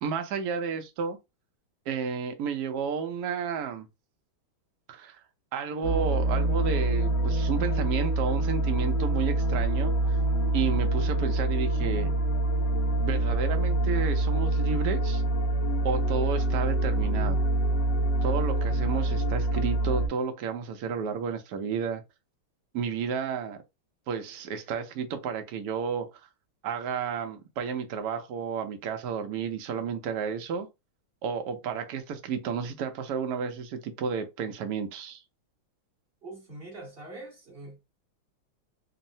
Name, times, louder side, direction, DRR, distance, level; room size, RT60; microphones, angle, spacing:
voice 1, 0.0-1.2 1.9-3.9 4.9-5.2 5.5-10.2 10.5-12.1 13.0-15.2 15.8-17.4 18.2-22.0 22.7-23.6 24.1-26.3 26.6-30.7 31.2-35.2, right 6 dB, 80° right, 0.9 m, -32 dB
sound 1, 5.8-20.1, right 2 dB, 75° left, 1.0 m, -26 dB
voice 2, 36.2-37.8, right 2 dB, 35° right, 0.9 m, -43 dB
3.6 x 2.0 x 2.6 m
omnidirectional pair, 2.3 m